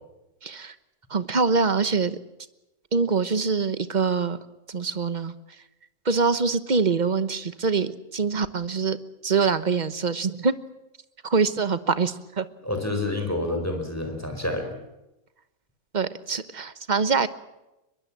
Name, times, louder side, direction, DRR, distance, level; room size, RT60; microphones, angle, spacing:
voice 1, 0.4-0.7 1.1-2.2 2.9-4.4 4.7-5.3 6.0-9.0 9.2-10.6 11.2-12.5 15.9-17.3, right 5 dB, 35° right, 13 dB, 1.1 m, -24 dB
voice 2, 12.6-14.8, left 2 dB, 10° left, 4 dB, 4.7 m, -28 dB
23.5 x 21.5 x 7.6 m, 0.95 s
omnidirectional pair, 1.6 m